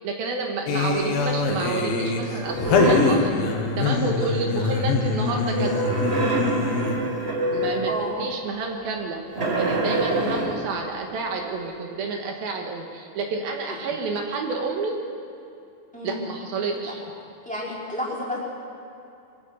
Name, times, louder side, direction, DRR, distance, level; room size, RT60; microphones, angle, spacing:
voice 1, 0.0-3.3 3.8-5.8 7.5-9.2 9.6-15.0 16.0-17.0, right 4 dB, 75° right, 1 dB, 3.4 m, -29 dB
sound 1, 0.7-7.2, left 4 dB, 70° left, 3.4 m, -24 dB
sound 2, 2.4-3.2 5.4-8.0 9.3-10.7, right 2 dB, 25° right, 1.4 m, -25 dB
voice 2, 7.9-8.2 10.3-10.4 13.7-13.8 15.9-16.2 16.8-16.9 17.4-18.4, left 1 dB, ahead, -5 dB, 4.3 m, -31 dB
23.5 x 15.0 x 8.1 m, 2.6 s
omnidirectional pair, 4.4 m